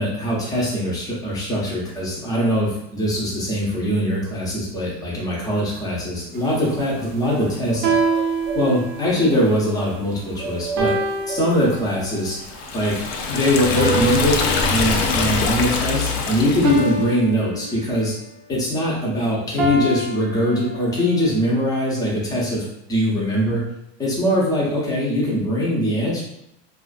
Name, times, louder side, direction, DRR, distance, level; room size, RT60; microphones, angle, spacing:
voice 1, 0.0-7.9 8.5-10.9 11.3-12.4 12.7-12.9 13.3-14.4 14.7-18.1 18.5-22.6 22.9-23.6 24.0-26.2, equal, 10° left, -5 dB, 0.5 m, -22 dB
sound 1, 6.3-14.9, right 4 dB, 90° right, 0.6 m, -36 dB
sound 2, 7.8-9.2 10.8-12.2 13.8-16.1 16.6-18.2 19.6-21.2, right 2 dB, 40° right, 0.4 m, -26 dB
Liquid, 12.4-17.1, left 4 dB, 75° left, 0.5 m, -23 dB
2.4 x 2.3 x 2.4 m, 0.82 s
cardioid pair, 165°, 31 cm